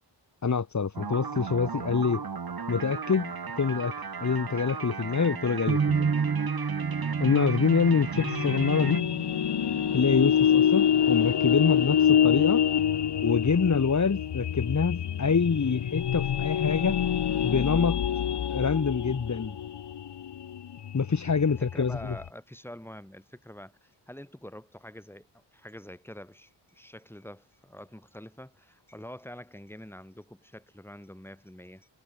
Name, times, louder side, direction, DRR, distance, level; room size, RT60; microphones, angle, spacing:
voice 1, 0.4-2.2 2.7-6.1 7.2-9.0 9.9-12.6 13.2-17.0 17.4-18.0 18.5-19.6 20.9-22.2, left 5 dB, 40° left, 1.8 m, -26 dB
sound 1, 0.9-9.0, right 5 dB, 55° right, 5.4 m, -36 dB
sound 2, 5.7-11.7, right 6 dB, 30° right, 0.8 m, -32 dB
sound 3, 8.1-22.3, left 9 dB, 65° left, 1.2 m, -26 dB
voice 2, 21.6-31.9, left 1 dB, 5° left, 7.1 m, -46 dB
wide cardioid pair, 85°, 44 cm